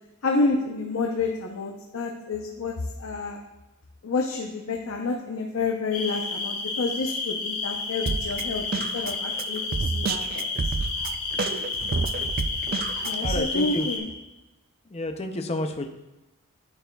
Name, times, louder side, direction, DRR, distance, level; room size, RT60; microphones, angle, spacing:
voice 1, 0.2-2.7 3.0-3.4 4.0-9.6 9.9-10.5 13.0-14.1, left 3 dB, 70° left, 1 dB, 0.7 m, -29 dB
sound 1, 5.9-14.0, left 4 dB, 90° left, 1.5 m, -31 dB
Drum kit, 8.1-13.4, right 4 dB, 40° right, 0.3 m, -29 dB
voice 2, 13.2-13.9 14.9-15.9, left 1 dB, 30° left, 6 dB, 0.5 m, -30 dB
10.5 x 6.9 x 2.3 m, 1.0 s
head